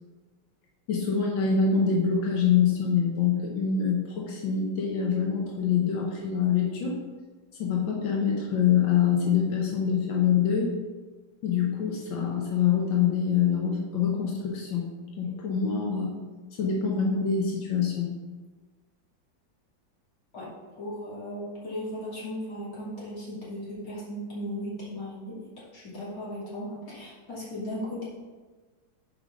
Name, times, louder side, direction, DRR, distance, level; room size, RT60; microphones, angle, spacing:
voice 1, 0.9-6.9 7.6-10.7 11.4-14.9 15.2-16.2 16.6-18.1, left 7 dB, 85° left, -2 dB, 1.8 m, -25 dB
voice 2, 20.8-25.4 25.7-28.1, equal, 50° left, -8 dB, 3.0 m, -36 dB
7.1 x 5.0 x 5.1 m, 1.3 s
omnidirectional pair, 2.0 m